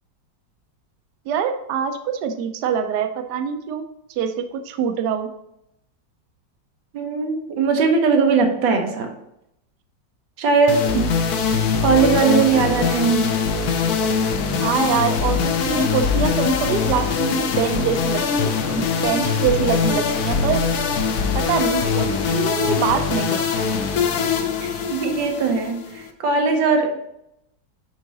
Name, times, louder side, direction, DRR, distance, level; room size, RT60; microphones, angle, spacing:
voice 1, 1.3-3.9 4.2-5.3 14.6-20.6 21.3-23.4, right 7 dB, 70° right, 7 dB, 1.1 m, -24 dB
voice 2, 6.9-9.1 10.4-11.1 11.5-13.3 24.6-27.0, right 4 dB, 90° right, 4 dB, 1.7 m, -20 dB
sound 1, 10.7-26.1, left 5 dB, 65° left, 1.1 m, -22 dB
6.4 x 4.9 x 4.0 m, 0.80 s
omnidirectional pair, 2.0 m